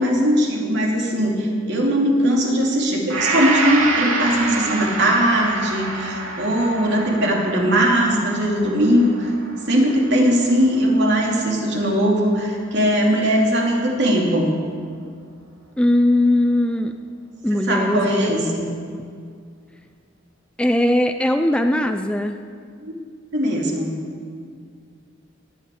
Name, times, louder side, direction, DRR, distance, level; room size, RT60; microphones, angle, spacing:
voice 1, 0.0-9.3 9.7-14.5 17.5-18.6 22.8-22.9 23.3-24.0, equal, 55° right, -1 dB, 3.0 m, -19 dB
Gong, 3.1-11.4 11.9-12.0, right 3 dB, 80° right, 2.4 m, -27 dB
voice 2, 15.8-16.9 17.4-18.3 20.6-22.4, left 1 dB, 5° left, 6 dB, 0.5 m, -19 dB
18.0 x 9.3 x 8.5 m, 2.2 s
head